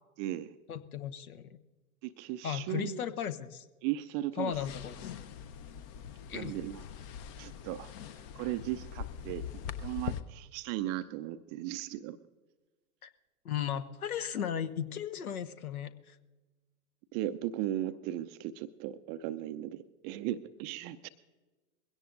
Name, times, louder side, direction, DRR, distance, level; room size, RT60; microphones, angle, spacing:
voice 1, 0.2-0.6 2.0-3.0 3.8-4.5 6.3-6.8 7.4-7.9 8.3-9.5 9.8-12.2 17.1-21.1, right 13 dB, 25° right, 11 dB, 0.4 m, -36 dB
voice 2, 0.7-1.6 2.4-3.7 4.4-5.1 6.3-6.6 13.0-13.1 13.4-16.2, left 9 dB, 70° left, 13 dB, 1.0 m, -36 dB
sound 1, 4.5-10.2, left 8 dB, 40° left, 0.8 m, -42 dB
21.5 x 17.0 x 2.5 m, 1.2 s
figure-of-eight pair, 90°, 44 cm